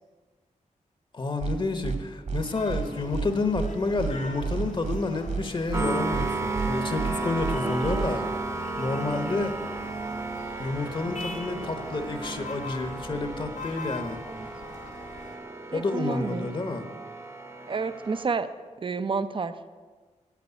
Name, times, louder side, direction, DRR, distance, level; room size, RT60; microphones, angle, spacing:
voice 1, 1.1-8.2 8.8-9.5 10.6-14.2 15.7-16.8, left 3 dB, 40° left, 7 dB, 1.1 m, -29 dB
sound 1, 1.4-1.5 1.8-2.0 2.3-2.4 2.7-2.8 3.1-3.3 3.5-3.7 4.0-4.1 4.4-5.0 5.3-5.4 5.7-5.8 6.1-6.3 6.5-6.7 7.0-7.1 7.4-7.5 7.8-8.1, right 5 dB, 60° right, 1.9 m, -30 dB
sound 2, 2.4-15.4, left 4 dB, 75° left, 2.6 m, -43 dB
sound 3, 5.7-18.2, right 3 dB, 20° right, 0.9 m, -34 dB
voice 2, 7.6-8.1 14.3-14.5 15.7-16.5 17.7-18.5 18.8-19.5, right 4 dB, 40° right, 12 dB, 0.7 m, -30 dB
8.8 x 8.4 x 9.3 m, 1.4 s
wide cardioid pair, 110°, 13 cm